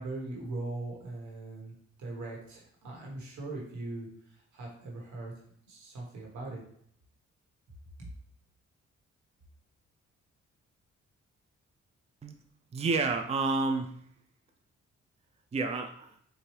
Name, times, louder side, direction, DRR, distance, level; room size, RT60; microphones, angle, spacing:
voice 1, 0.0-1.7 2.0-5.3 5.6-6.6 8.0-8.1, right 2 dB, 80° right, -2 dB, 1.5 m, -40 dB
voice 2, 12.7-13.9 15.5-16.1, right 3 dB, 20° right, 5 dB, 0.4 m, -29 dB
4.4 x 2.6 x 3.2 m, 0.66 s
supercardioid pair, 65°, 29 cm